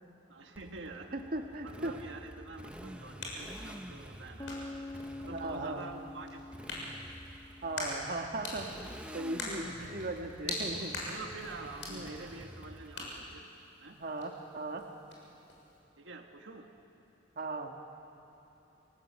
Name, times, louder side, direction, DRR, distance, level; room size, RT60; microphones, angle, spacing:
voice 1, 0.3-1.2 1.6-4.6 5.2-6.4 6.7-6.9 9.6-9.9 11.0-13.5 13.8-14.0 16.0-16.7, right 3 dB, 70° right, 3 dB, 1.7 m, -47 dB
Motorcycle, 0.6-13.4, equal, 5° right, 0.9 m, -49 dB
voice 2, 1.1-1.9 5.2-5.8 7.6-10.9 11.9-12.2 14.0-14.9 17.4-17.8, right 2 dB, 50° right, 3 dB, 1.8 m, -38 dB
sound 1, 2.6-15.8, left 2 dB, 80° left, 6.8 m, -44 dB
sound 2, 4.4-8.3, left 2 dB, 20° left, 1.8 m, -46 dB
28.5 x 18.5 x 8.8 m, 3.0 s
head